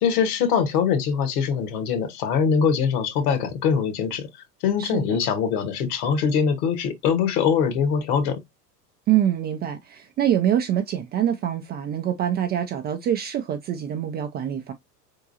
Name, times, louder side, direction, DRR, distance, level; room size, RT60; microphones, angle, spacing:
voice 1, 0.0-8.4, left 6 dB, 60° left, 1.7 m, -23 dB
voice 2, 4.8-5.2 9.1-14.7, right 10 dB, 20° right, 0.4 m, -25 dB
4.5 x 3.7 x 2.7 m
hypercardioid pair, 95°, 49 cm